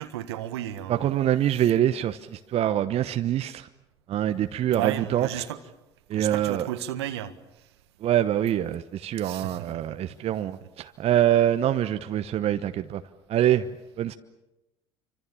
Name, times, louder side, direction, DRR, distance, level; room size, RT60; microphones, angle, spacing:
voice 1, 0.0-1.2 1.5-1.7 4.4-5.6 6.1-7.3 9.2-10.3 10.6-10.7, right 12 dB, 75° right, 1.6 m, -34 dB
voice 2, 0.9-3.7 4.1-5.3 6.1-6.7 8.0-13.0 13.3-13.7 14.0-14.1, right 11 dB, 45° right, 1.1 m, -25 dB
28.5 x 25.5 x 7.2 m
figure-of-eight pair, 65°, 14 cm